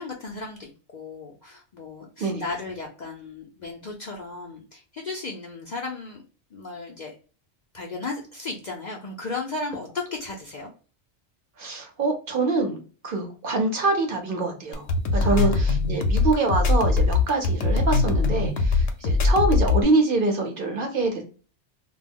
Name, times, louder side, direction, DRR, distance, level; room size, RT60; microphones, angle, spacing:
voice 1, 0.0-6.2 6.5-7.1 7.7-10.7 15.2-15.8, left 3 dB, 55° left, -1 dB, 0.5 m, -35 dB
voice 2, 11.6-12.8 13.0-14.9 15.1-21.2, right 2 dB, 55° right, 3 dB, 0.7 m, -25 dB
sound 1, 14.7-19.8, left 3 dB, 75° left, 0.9 m, -21 dB
2.3 x 2.0 x 3.4 m, 0.38 s
omnidirectional pair, 1.2 m